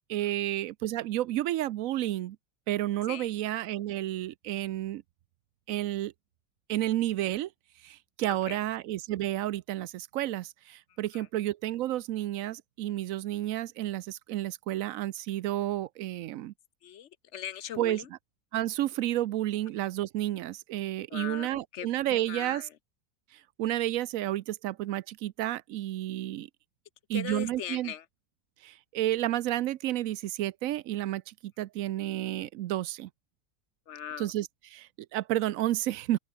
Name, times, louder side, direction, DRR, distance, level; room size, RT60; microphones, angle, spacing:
voice 1, 0.1-2.4 2.7-5.0 5.7-6.1 6.7-7.5 7.8-16.5 17.8-18.0 18.5-22.7 23.6-26.5 27.1-27.9 28.6-33.1 34.2-36.2, right 14 dB, 75° right, 1.0 m, -31 dB
voice 2, 16.8-18.1 21.1-22.7 27.1-28.0 33.9-34.3, left 10 dB, 65° left, 0.9 m, -40 dB
open air
omnidirectional pair, 1.4 m